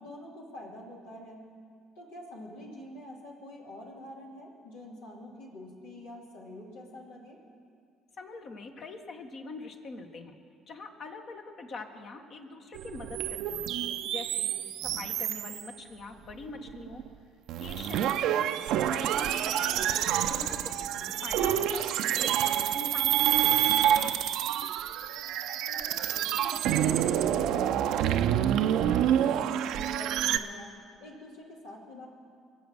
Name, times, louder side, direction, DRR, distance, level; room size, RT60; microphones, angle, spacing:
voice 1, 0.0-1.4 1.9-7.4 14.5-15.0 20.9-21.3 25.7-32.1, left 1 dB, 85° left, -3 dB, 2.9 m, -46 dB
voice 2, 8.2-10.3 10.7-13.7 14.0-14.5 15.0-17.0 17.6-18.5 18.9-20.9 21.2-24.0, left 3 dB, 55° left, 4 dB, 1.6 m, -44 dB
sound 1, 12.7-15.7 16.3-17.1 17.5-30.4, right 10 dB, 70° right, 0.6 m, -28 dB
23.0 x 7.8 x 6.3 m, 2.2 s
hypercardioid pair, 60°, 0 cm